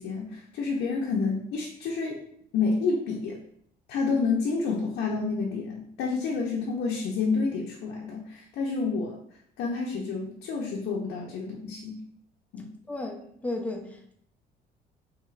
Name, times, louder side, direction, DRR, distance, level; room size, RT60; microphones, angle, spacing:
voice 1, 0.0-2.2 2.5-3.4 3.9-9.2 9.6-12.0 12.5-12.7, left 4 dB, 75° left, -2 dB, 0.5 m, -29 dB
voice 2, 12.9-14.1, left 2 dB, 10° left, 1 dB, 0.5 m, -34 dB
3.1 x 2.9 x 2.4 m, 0.68 s
cardioid pair, 110°, 17 cm